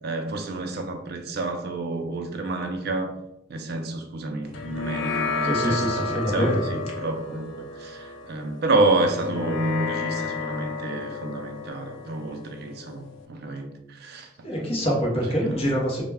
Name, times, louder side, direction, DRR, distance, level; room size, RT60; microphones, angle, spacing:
voice 1, 0.0-3.1 3.5-14.3 14.6-14.8 15.3-15.6, right 2 dB, 55° right, 5 dB, 0.4 m, -29 dB
sound 1, 4.5-13.2, left 4 dB, 75° left, 0.3 m, -32 dB
voice 2, 5.4-6.6 14.4-16.0, equal, 30° left, -3 dB, 0.7 m, -25 dB
2.1 x 2.1 x 3.3 m, 0.87 s
head